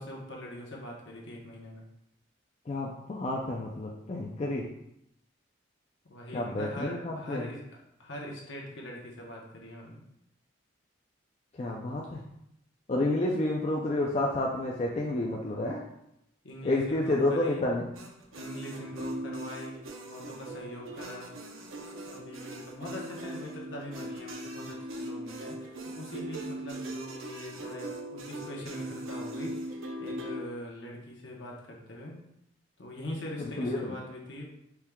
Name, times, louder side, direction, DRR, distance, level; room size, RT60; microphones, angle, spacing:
voice 1, 0.0-1.8 6.1-10.0 16.4-17.6 18.4-21.3 22.1-32.2 32.8-34.6, equal, 60° left, -1 dB, 0.9 m, -42 dB
voice 2, 2.7-4.6 6.3-7.4 11.6-12.2 12.9-15.8 16.6-17.8 33.6-33.9, left 2 dB, 30° left, -2 dB, 0.3 m, -30 dB
sound 1, 17.9-30.4, right 1 dB, 80° right, 0.6 m, -40 dB
4.5 x 3.5 x 2.3 m, 0.80 s
head